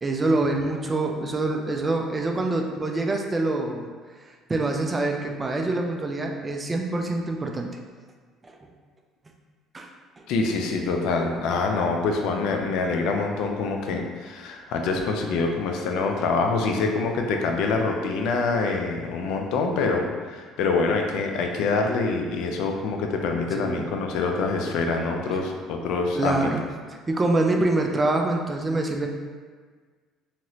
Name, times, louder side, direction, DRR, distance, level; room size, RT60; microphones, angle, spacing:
voice 1, 0.0-3.9 4.5-7.7 8.4-8.6 9.7-9.9 10.2-10.3 23.6-23.9 26.1-26.6 27.1-29.1, right 2 dB, 25° right, 2 dB, 0.4 m, -25 dB
voice 2, 10.3-26.5, left 4 dB, 75° left, 3 dB, 0.4 m, -25 dB
2.9 x 2.8 x 2.8 m, 1.6 s
supercardioid pair, 85°, 0 cm